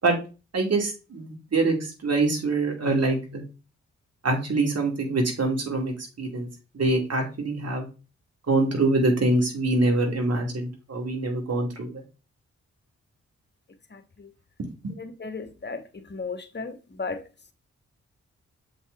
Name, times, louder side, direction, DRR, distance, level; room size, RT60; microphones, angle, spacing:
voice 1, 0.5-3.4 4.2-6.5 6.7-7.9 8.5-12.0, right 2 dB, 55° right, 2.7 m, -24 dB
voice 2, 15.0-15.8 16.1-16.7 17.0-17.2, left 4 dB, 35° left, 1.2 m, -34 dB
7.5 x 4.1 x 3.5 m
supercardioid pair, 45°, 30 cm